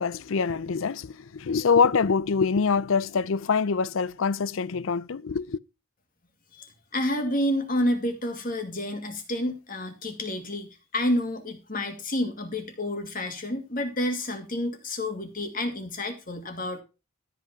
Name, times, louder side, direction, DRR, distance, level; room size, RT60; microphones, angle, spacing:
voice 1, 0.0-5.6, left 5 dB, 60° left, 0.5 m, -25 dB
voice 2, 6.5-16.8, left 1 dB, 40° left, 2.3 m, -29 dB
13.0 x 5.9 x 5.8 m
head